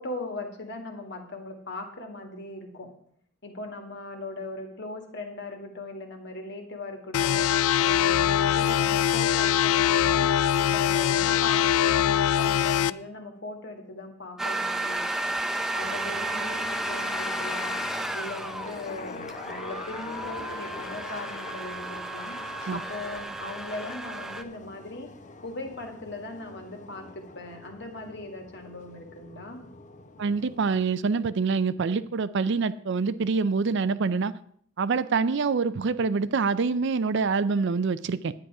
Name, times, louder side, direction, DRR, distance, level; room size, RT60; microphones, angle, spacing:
voice 1, 0.0-2.9 3.4-7.4 7.8-10.3 10.6-15.3 15.7-17.8 18.1-22.4 22.7-25.1 25.4-29.6, left 2 dB, 55° left, 3 dB, 2.0 m, -39 dB
sound 1, 7.1-12.9, left 10 dB, 85° left, 0.3 m, -22 dB
sound 2, 14.4-24.4, right 1 dB, ahead, 0.5 m, -33 dB
sound 3, 15.8-30.9, left 3 dB, 35° left, 0.7 m, -45 dB
voice 2, 30.2-34.3 34.8-38.3, right 4 dB, 60° right, 15 dB, 0.4 m, -25 dB
10.5 x 9.5 x 4.8 m, 0.63 s
head